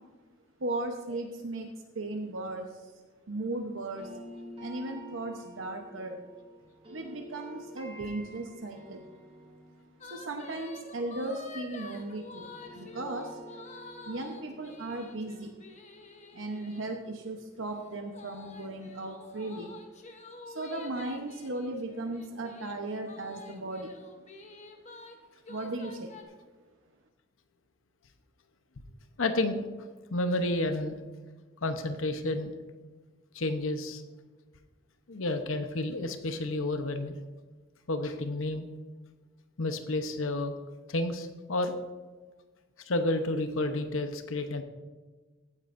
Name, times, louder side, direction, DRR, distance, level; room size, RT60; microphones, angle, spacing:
voice 1, 0.6-1.7 1.9-2.7 3.3-4.1 4.6-6.3 6.9-9.0 10.0-13.4 14.1-15.5 16.3-19.7 20.5-24.0 25.5-26.1, right 2 dB, 70° right, 3 dB, 0.9 m, -36 dB
sound 1, 4.0-12.1 12.4-17.3, equal, 30° right, 3.0 m, -50 dB
sound 2, 10.0-16.9 18.1-25.2 25.4-26.2, left 3 dB, 35° left, 1.0 m, -48 dB
voice 2, 29.2-29.6 30.1-31.0 31.6-32.5 33.3-34.0 35.1-37.2 37.9-38.7 39.6-40.5 40.9-41.8 42.9-44.6, left 2 dB, 80° left, 7 dB, 0.8 m, -30 dB
15.5 x 9.7 x 2.6 m, 1.3 s
head